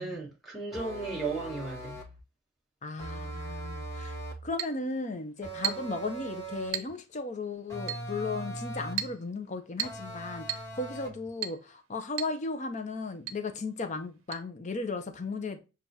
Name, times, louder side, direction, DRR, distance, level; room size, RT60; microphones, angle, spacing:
voice 1, 0.0-2.0, right 4 dB, ahead, 1.6 m, -35 dB
sound 1, 0.7-2.2 3.0-4.5 5.4-6.9 7.7-9.1 9.8-11.3, right 2 dB, 15° left, 1.2 m, -40 dB
voice 2, 2.8-4.2 4.4-15.6, left 3 dB, 35° left, 0.5 m, -36 dB
Chink clink, 4.6-4.8 5.6-6.0 6.7-7.0 7.9-8.1 9.0-9.2 9.8-10.1 10.5-10.7 11.4-11.6 12.2-12.4 12.6-12.7 13.3-13.4 14.3-14.4, right 11 dB, 75° right, 0.6 m, -34 dB
7.1 x 2.4 x 2.7 m
head